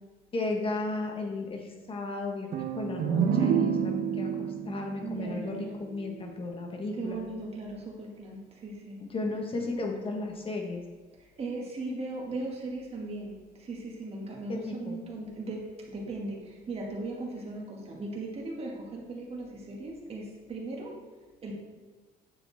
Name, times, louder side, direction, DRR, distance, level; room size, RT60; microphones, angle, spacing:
voice 1, 0.3-4.3 4.6-7.2 9.0-10.8 14.5-15.0, left 3 dB, 35° left, 2 dB, 1.5 m, -34 dB
sound 1, 2.5-6.2, right 7 dB, 60° right, 0.7 m, -29 dB
voice 2, 5.0-5.8 7.0-9.0 11.4-13.3 13.7-15.6 15.9-16.4 16.7-20.9 21.4-21.5, right 2 dB, 35° right, -2 dB, 2.3 m, -37 dB
9.7 x 7.1 x 3.6 m, 1.3 s
cardioid pair, 110°, 17 cm